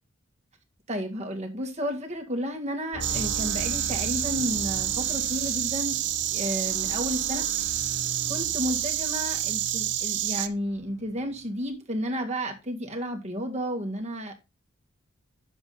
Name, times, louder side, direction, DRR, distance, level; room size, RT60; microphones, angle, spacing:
voice 1, 0.9-6.0 6.3-7.5 8.3-14.3, equal, 30° right, 2.0 m, -32 dB
sound 1, 2.9-10.4 10.7-11.4 11.6-11.7, right 1 dB, 70° left, 3.6 m, -40 dB
Insect, 3.0-10.5, right 12 dB, 55° right, 0.8 m, -28 dB
9.6 x 7.3 x 4.2 m
head